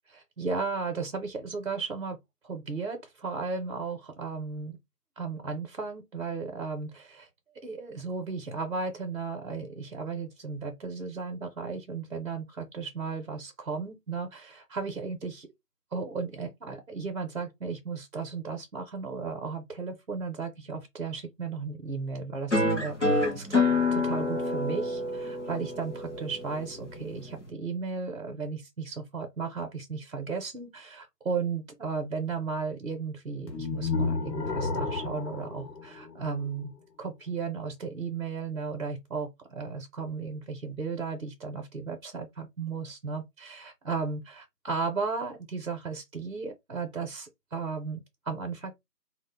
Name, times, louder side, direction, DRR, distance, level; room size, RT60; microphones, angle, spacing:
voice 1, 0.1-2.2 2.4-4.8 5.2-7.3 7.6-15.5 15.9-48.7, right 4 dB, 55° right, 0.6 m, -35 dB
sound 1, 22.5-27.5, left 2 dB, 45° left, 0.6 m, -28 dB
sound 2, 33.5-36.6, left 4 dB, 80° left, 0.9 m, -32 dB
2.3 x 2.1 x 3.4 m
figure-of-eight pair, 175°, 49 cm